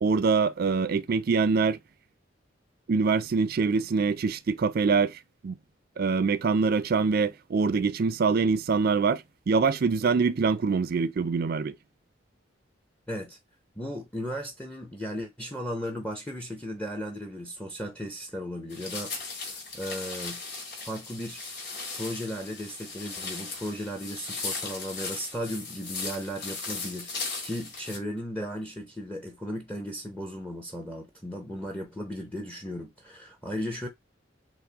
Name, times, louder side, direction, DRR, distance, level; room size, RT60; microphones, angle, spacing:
voice 1, 0.0-1.8 2.9-5.6 6.0-11.7, right 4 dB, 55° right, 0.4 m, -24 dB
voice 2, 13.1-13.4 13.8-19.1 19.4-20.4 20.8-21.4 21.9-33.9, equal, 5° left, 0.6 m, -36 dB
sound 1, 18.7-28.0, left 4 dB, 55° left, 2.7 m, -37 dB
5.9 x 2.1 x 3.9 m
head